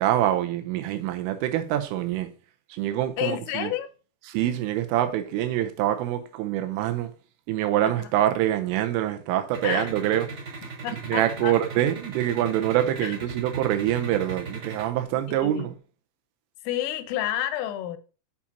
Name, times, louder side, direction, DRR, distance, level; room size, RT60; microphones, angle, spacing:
voice 1, 0.0-2.3 2.7-3.7 4.3-7.1 7.5-10.3 11.1-15.7, right 12 dB, 80° right, 3.2 m, -25 dB
voice 2, 3.2-3.9 7.8-8.1 9.6-9.9 10.8-11.6 13.0-13.2 15.3-15.7 16.6-18.0, left 12 dB, 85° left, 3.3 m, -30 dB
sound 1, 9.5-14.8, right 5 dB, 30° right, 3.2 m, -36 dB
8.5 x 7.2 x 2.8 m
omnidirectional pair, 6.0 m